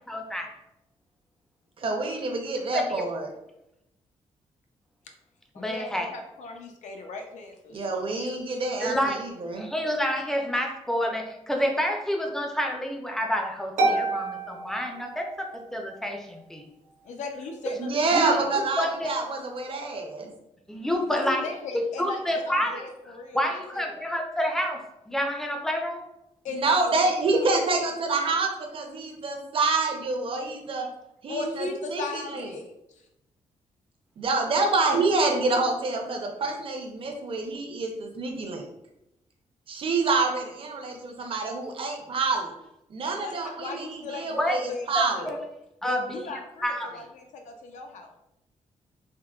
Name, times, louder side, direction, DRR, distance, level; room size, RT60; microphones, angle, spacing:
voice 1, 0.1-0.5 2.7-2.8 5.6-6.1 8.8-9.2 9.5-16.6 18.1-18.4 18.8-19.1 20.7-21.4 22.0-22.8 23.3-26.0 44.3-44.6 44.9-45.4 45.8-46.3 46.6-47.0, equal, 5° left, 2 dB, 0.4 m, -28 dB
voice 2, 1.8-3.3 7.7-9.7 17.8-20.3 26.5-30.9 31.2-32.5 34.2-38.7 39.7-42.5 42.9-45.2, right 3 dB, 45° right, 2 dB, 0.6 m, -27 dB
voice 3, 5.5-8.4 17.0-18.6 21.1-24.0 26.4-26.9 27.3-28.3 31.3-32.7 43.0-44.4 44.7-45.4 45.8-48.1, left 3 dB, 75° left, 4 dB, 0.5 m, -38 dB
Harp, 13.8-15.7, right 2 dB, 75° right, 0.8 m, -28 dB
3.6 x 2.1 x 2.3 m, 0.87 s
cardioid pair, 115°, 12 cm